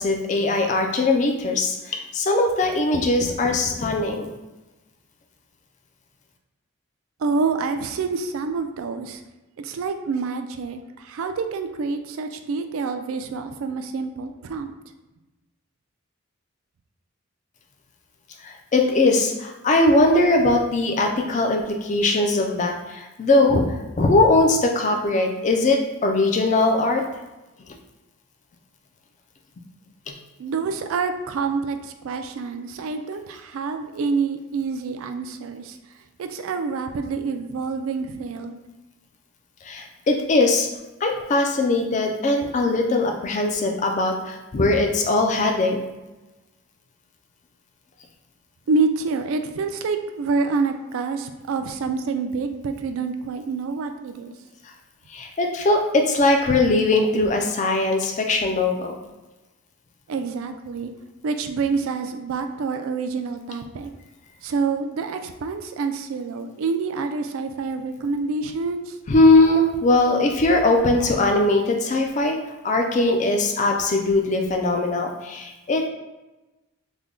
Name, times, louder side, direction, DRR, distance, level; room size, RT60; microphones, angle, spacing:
voice 1, 0.0-4.3 18.4-23.6 24.0-27.0 39.7-40.7 41.0-45.8 55.1-58.9 69.1-72.4 72.6-75.9, left 2 dB, 35° left, 3 dB, 0.3 m, -20 dB
voice 2, 7.2-9.2 9.6-14.7 30.4-35.8 36.2-38.6 48.7-54.3 60.1-60.9 61.2-63.9 64.4-69.0, right 4 dB, 70° right, 7 dB, 0.3 m, -27 dB
3.3 x 2.2 x 3.6 m, 1.0 s
head